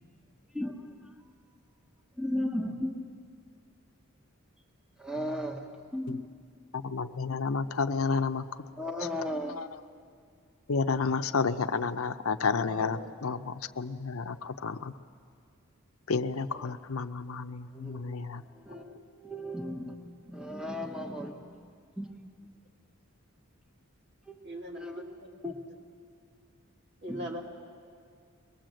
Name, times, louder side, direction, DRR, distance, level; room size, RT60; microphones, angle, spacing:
voice 1, 2.2-3.0 5.0-6.2 8.8-9.6 12.6-13.1 16.6-16.7 17.7-21.4 22.0-22.2 24.3-24.4 24.7-25.0 25.4-25.5 27.1-27.3, left 1 dB, 5° right, 2 dB, 1.2 m, -36 dB
voice 2, 6.7-8.4 9.5-9.7 10.7-14.9 16.1-18.4, left 4 dB, 80° left, 9 dB, 0.7 m, -31 dB
voice 3, 24.4-24.9 25.2-25.3 27.0-27.4, right 1 dB, 55° right, 0 dB, 2.7 m, -39 dB
23.0 x 20.5 x 7.7 m, 2.2 s
head